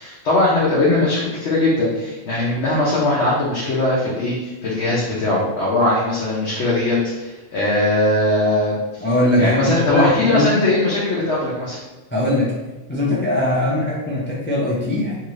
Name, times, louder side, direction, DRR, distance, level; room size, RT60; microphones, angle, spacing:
voice 1, 0.0-9.1 9.4-11.8, left 2 dB, 70° left, -7 dB, 1.0 m, -20 dB
voice 2, 9.0-10.5 12.1-12.5 12.9-15.1, left 1 dB, 15° left, -6 dB, 0.4 m, -20 dB
2.9 x 2.5 x 3.1 m, 1.2 s
omnidirectional pair, 1.3 m